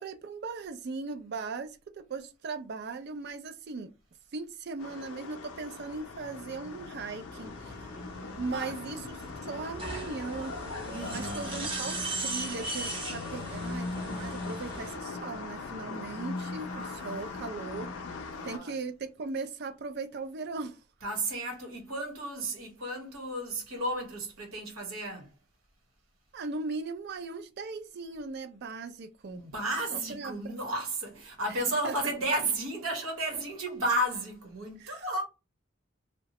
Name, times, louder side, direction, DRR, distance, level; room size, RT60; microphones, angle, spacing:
voice 1, 0.0-3.9 4.3-7.9 8.4-9.2 9.4-10.5 11.1-17.9 18.4-20.8 26.3-29.4 29.9-30.5 31.8-32.0 34.8-35.0, right 4 dB, 50° right, 0.4 m, -38 dB
sound 1, 4.8-18.6, left 3 dB, 90° left, 0.5 m, -40 dB
sound 2, 7.3-15.0, right 2 dB, 25° right, 0.7 m, -39 dB
voice 2, 8.2-8.8 10.9-11.6 16.7-17.8 18.3-18.8 21.0-25.3 29.3-35.2, right 1 dB, 90° right, 1.1 m, -33 dB
2.8 x 2.1 x 2.9 m
head